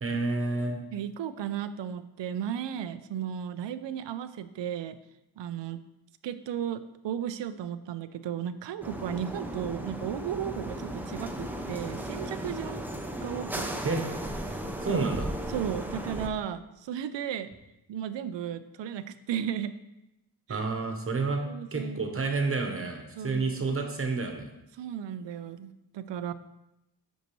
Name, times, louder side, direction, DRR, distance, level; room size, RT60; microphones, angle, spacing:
voice 1, 0.0-0.8 13.8-14.0 14.8-15.3 20.5-21.4 21.7-24.5, right 3 dB, 30° right, 4 dB, 1.0 m, -29 dB
voice 2, 0.9-5.0 5.4-5.8 6.2-12.8 13.2-14.0 14.5-14.6 14.9-15.1 15.5-17.5 17.9-19.7 20.5-20.7 21.4-22.1 23.2-23.6 24.7-26.3, right 9 dB, 90° right, 12 dB, 0.6 m, -35 dB
sound 1, 8.8-16.3, right 1 dB, 5° right, 0.4 m, -36 dB
8.2 x 6.3 x 3.0 m, 0.90 s
wide cardioid pair, 165°, 42 cm